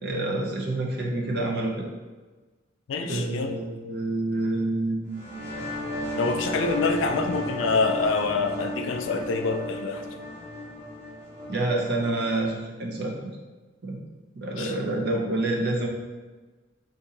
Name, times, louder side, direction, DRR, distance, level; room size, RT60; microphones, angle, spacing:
voice 1, 0.0-1.8 3.0-5.3 5.6-6.1 11.5-13.3 13.8-14.0 14.3-15.9, right 2 dB, 55° right, -1 dB, 0.6 m, -28 dB
voice 2, 2.9-3.6 6.2-10.0 14.6-14.7, left 4 dB, 80° left, 6 dB, 0.3 m, -26 dB
sound 1, 5.1-12.5, equal, 20° right, 1.3 m, -34 dB
2.8 x 2.6 x 3.8 m, 1.3 s
head